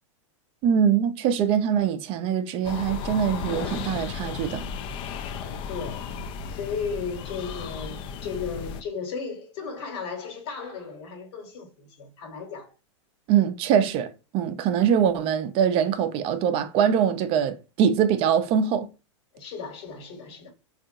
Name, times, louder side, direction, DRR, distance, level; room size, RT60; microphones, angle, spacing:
voice 1, 0.6-4.7 13.3-18.9, right 8 dB, 35° right, 0.5 m, -23 dB
sound 1, 2.6-8.8, left 7 dB, 30° left, 0.4 m, -34 dB
voice 2, 5.4-6.1 6.5-12.7 19.3-20.5, left 5 dB, 55° left, 1.3 m, -35 dB
3.5 x 2.4 x 2.6 m
hypercardioid pair, 110°, 16 cm